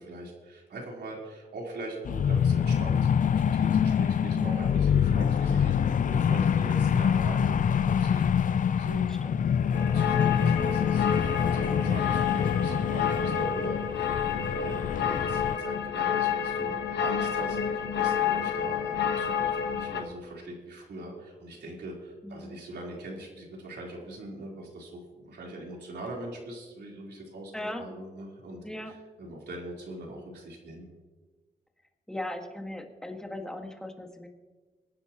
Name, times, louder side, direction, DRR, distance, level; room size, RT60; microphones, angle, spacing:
voice 1, 0.0-28.6 29.2-30.9, right 1 dB, 70° right, -2 dB, 3.8 m, -41 dB
sound 1, 2.1-15.6, left 8 dB, 50° left, 0.4 m, -25 dB
voice 2, 4.3-4.7 8.9-9.2 16.6-17.2 22.2-22.6 27.5-27.8 28.6-28.9 32.1-34.3, left 1 dB, 5° left, 3 dB, 1.7 m, -39 dB
sound 2, 9.7-20.0, left 7 dB, 75° left, 1.3 m, -29 dB
23.0 x 10.5 x 3.0 m, 1.3 s
cardioid pair, 100°, 18 cm